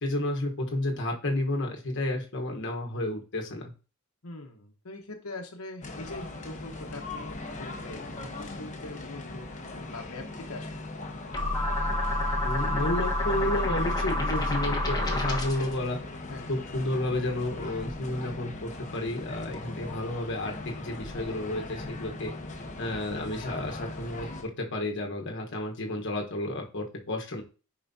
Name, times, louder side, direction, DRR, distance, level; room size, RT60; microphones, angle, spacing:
voice 1, 0.0-3.7 12.4-16.0 16.5-22.3 22.8-27.4, left 1 dB, 60° left, 1 dB, 1.2 m, -31 dB
voice 2, 4.2-9.5 9.8-11.0 16.3-16.6, left 2 dB, 75° left, 2 dB, 1.1 m, -43 dB
sound 1, 5.8-24.4, left 2 dB, 35° left, 0.9 m, -40 dB
sound 2, 11.3-15.7, left 1 dB, 20° left, 1.3 m, -28 dB
10.5 x 4.9 x 2.7 m, 0.35 s
head